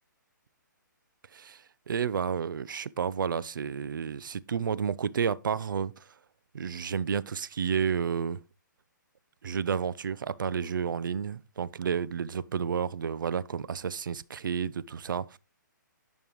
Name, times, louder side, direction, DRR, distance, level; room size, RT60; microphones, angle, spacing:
voice 1, 1.3-6.0 6.5-8.4 9.4-15.4, right 7 dB, 75° right, 0.5 m, -31 dB
11.0 x 5.3 x 3.0 m
hypercardioid pair, 155°, 11 cm